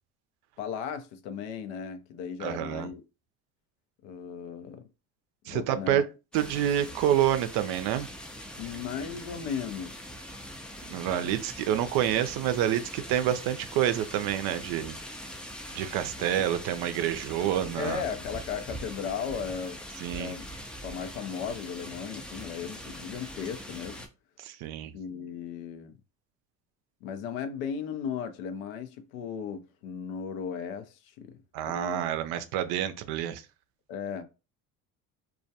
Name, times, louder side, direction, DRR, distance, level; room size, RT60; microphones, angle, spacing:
voice 1, 0.6-3.0 4.0-4.8 5.5-6.0 8.6-10.0 11.1-11.3 16.2-16.3 17.8-19.8 20.1-20.5 20.8-24.1 24.9-26.0 27.0-32.0 33.9-34.2, left 7 dB, 80° left, 0.5 m, -36 dB
voice 2, 2.4-2.9 5.5-6.0 6.3-8.1 10.9-15.0 15.7-18.0 20.0-20.3 24.4-24.9 31.5-33.4, right 11 dB, 65° right, 0.5 m, -28 dB
sound 1, 6.3-24.1, equal, 5° left, 0.3 m, -42 dB
2.2 x 2.1 x 2.7 m
hypercardioid pair, 70°, 41 cm